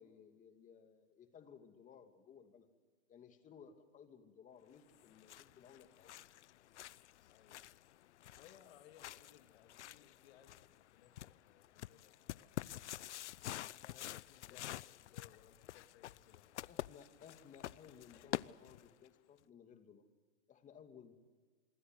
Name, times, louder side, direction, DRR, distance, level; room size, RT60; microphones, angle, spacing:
voice 1, 0.0-2.7 3.1-6.1 14.5-14.6 16.7-20.1 20.5-21.1, left 7 dB, 20° left, 7 dB, 2.6 m, -59 dB
sound 1, 4.9-19.1, left 13 dB, 90° left, 0.7 m, -48 dB
voice 2, 7.3-7.7 8.4-12.6 13.4-14.7 15.0-16.5, left 10 dB, 60° left, 6 dB, 2.7 m, -64 dB
26.5 x 23.0 x 8.0 m, 1.5 s
hypercardioid pair, 140°, 34 cm